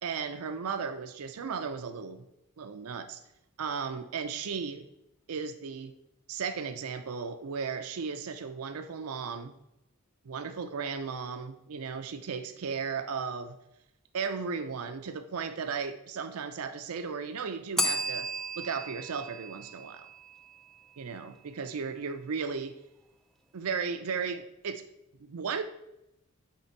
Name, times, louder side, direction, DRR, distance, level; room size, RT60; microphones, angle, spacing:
voice 1, 0.0-2.3 2.6-3.2 3.6-4.9 5.3-5.9 6.3-9.6 10.2-13.6 14.1-18.3 18.6-20.1 21.0-22.8 23.5-24.8 25.2-25.6, right 5 dB, 80° right, 9 dB, 0.5 m, -35 dB
Bell, 17.8-20.6, equal, ahead, 0.3 m, -34 dB
8.4 x 3.3 x 4.5 m, 0.86 s
head